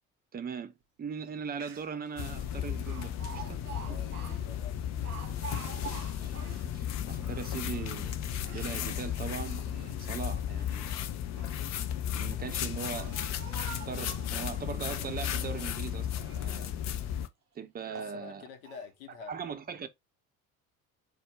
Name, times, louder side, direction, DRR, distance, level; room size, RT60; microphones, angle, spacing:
voice 1, 0.3-0.7 1.0-3.6 3.9-4.0 6.2-6.3 6.7-8.2 8.5-10.9 12.1-13.2 13.9-16.7 17.5-18.4 19.3-19.9, right 6 dB, 20° right, 0.6 m, -40 dB
Speech, 1.3-1.4 1.5-2.1 2.9-6.7 7.2-8.8 9.4-10.2 11.1-11.7 12.4-14.4 14.9-15.8 16.1-16.7 17.2-17.3 17.8-18.2 18.6-18.9, right 6 dB, 85° right, 0.6 m, -47 dB
sound 1, 2.2-17.3, left 10 dB, 40° left, 0.6 m, -34 dB
voice 2, 3.8-4.2 4.4-5.0 17.9-19.4, left 5 dB, 65° left, 1.0 m, -47 dB
4.2 x 2.4 x 4.5 m
figure-of-eight pair, 55°, 44 cm